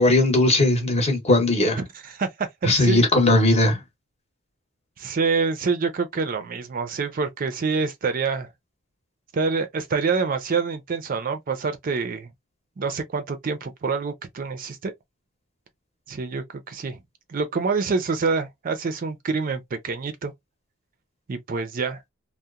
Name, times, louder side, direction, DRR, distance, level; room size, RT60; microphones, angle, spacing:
voice 1, 0.0-1.8 2.6-3.8, left 2 dB, 30° left, 0.8 m, -18 dB
voice 2, 2.0-3.0 5.0-8.5 9.3-12.3 12.8-14.9 16.1-17.0 17.3-20.3 21.3-22.0, right 4 dB, 40° right, 0.4 m, -26 dB
2.8 x 2.0 x 2.3 m
head